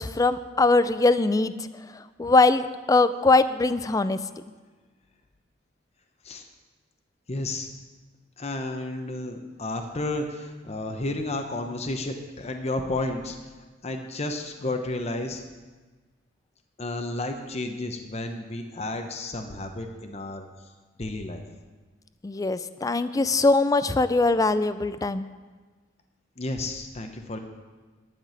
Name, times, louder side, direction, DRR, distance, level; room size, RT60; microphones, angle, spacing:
voice 1, 0.0-1.5 2.2-4.2 22.2-25.2, left 3 dB, 20° left, 13 dB, 0.4 m, -21 dB
voice 2, 7.3-7.7 8.4-13.4 13.8-15.4 16.8-20.4 21.0-21.4 26.4-27.4, left 2 dB, 35° left, 4 dB, 0.8 m, -32 dB
11.0 x 6.1 x 8.8 m, 1.3 s
head